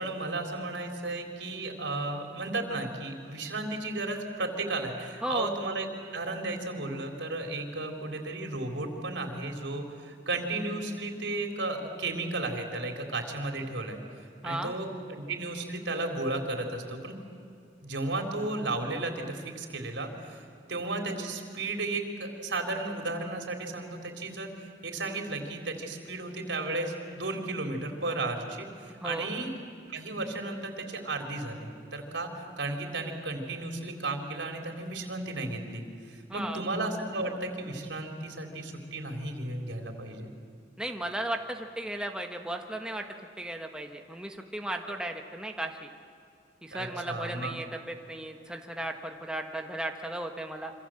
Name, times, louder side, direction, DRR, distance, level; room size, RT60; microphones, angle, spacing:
voice 1, 0.0-5.9 6.1-14.0 14.4-17.1 17.8-24.5 24.8-29.6 29.9-40.3 44.9-45.0 46.7-47.6, right 2 dB, 80° right, 3 dB, 3.9 m, -34 dB
voice 2, 5.2-5.5 14.4-14.7 29.0-29.3 36.3-36.6 40.8-43.1 43.4-45.9 46.6-50.7, right 1 dB, 5° right, 3 dB, 1.4 m, -35 dB
27.0 x 25.5 x 7.8 m, 2.5 s
head